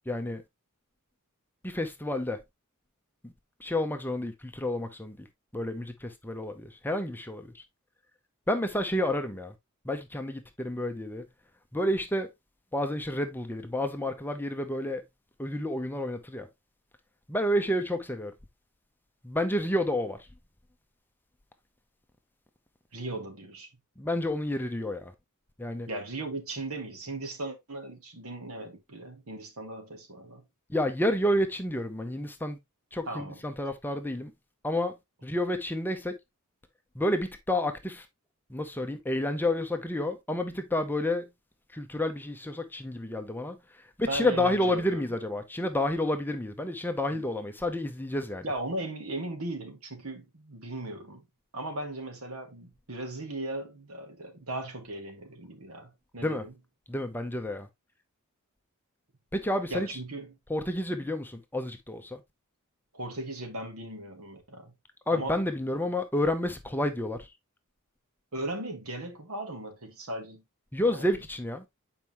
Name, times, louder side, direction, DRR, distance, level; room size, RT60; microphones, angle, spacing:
voice 1, 0.1-0.4 1.6-2.4 3.2-3.3 3.6-5.3 5.5-7.6 8.5-9.5 9.8-11.2 11.7-12.3 12.7-15.0 15.4-16.5 17.3-18.3 19.2-20.3 24.0-25.1 25.6-25.9 30.7-32.6 32.9-34.3 34.6-35.0 35.2-36.2 36.9-38.1 38.5-41.3 41.7-48.5 56.2-56.4 56.9-57.7 59.3-59.9 60.5-62.2 65.1-67.3 70.7-71.6, left 1 dB, 10° left, 0.7 m, -30 dB
voice 2, 22.9-23.7 25.9-30.5 33.1-33.4 44.1-45.0 47.1-47.2 48.4-51.2 51.5-56.5 59.7-60.4 62.9-64.7 65.1-65.4 68.3-70.4 70.9-71.1, right 1 dB, 70° right, 1.7 m, -37 dB
7.4 x 4.8 x 2.9 m
head